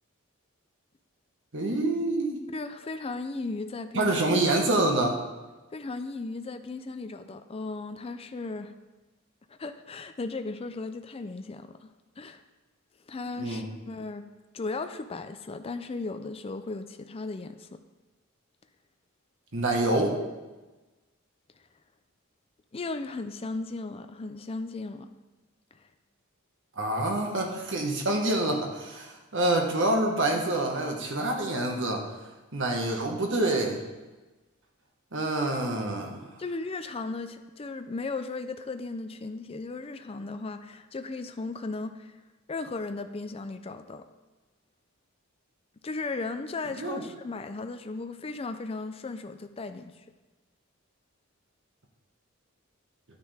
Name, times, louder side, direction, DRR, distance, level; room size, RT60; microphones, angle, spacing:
voice 1, 1.5-2.4 3.9-5.2 13.4-13.6 19.5-20.2 26.8-32.0 32.5-33.8 35.1-36.3 46.8-47.0, right 2 dB, 60° right, 1 dB, 1.6 m, -27 dB
voice 2, 2.5-4.2 5.7-8.7 9.5-11.9 12.2-12.4 13.1-14.2 14.5-17.8 22.7-25.1 36.4-42.2 42.5-44.0 45.8-50.0, left 3 dB, 25° left, 8 dB, 0.4 m, -36 dB
9.9 x 9.5 x 3.5 m, 1.2 s
head